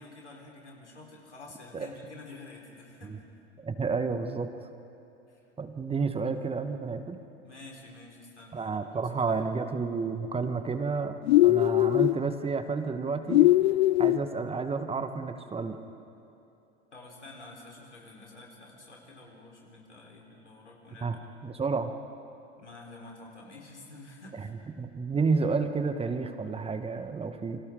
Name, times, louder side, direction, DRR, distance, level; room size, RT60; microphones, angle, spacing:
voice 1, 0.0-3.2 5.3-5.4 7.4-8.8 9.2-9.5 16.9-21.2 22.6-24.5, left 2 dB, 85° left, -1 dB, 4.1 m, -49 dB
voice 2, 3.6-4.5 5.6-7.2 8.5-13.5 14.0-15.8 21.0-21.2 21.4-21.9 24.8-27.6, right 4 dB, 15° right, 8 dB, 1.4 m, -30 dB
sound 1, 11.3-12.2 13.3-14.2, left 17 dB, 65° left, 0.5 m, -21 dB
29.0 x 25.5 x 3.8 m, 2.8 s
figure-of-eight pair, 80°, 34 cm